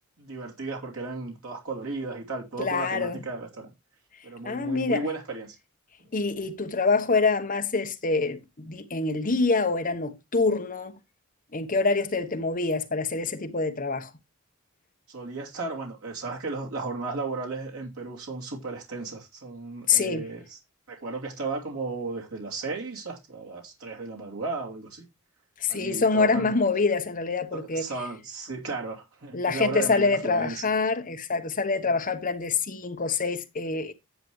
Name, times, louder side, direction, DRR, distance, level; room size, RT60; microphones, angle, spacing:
voice 1, 0.2-3.7 4.2-5.6 15.1-20.6 20.9-25.0 25.7-26.5 27.5-30.6, right 3 dB, 80° right, 2.7 m, -35 dB
voice 2, 2.6-3.2 4.4-5.0 6.1-10.9 11.5-14.1 19.9-20.3 25.6-27.8 29.3-33.9, left 4 dB, 40° left, 1.0 m, -26 dB
10.0 x 7.6 x 3.1 m
head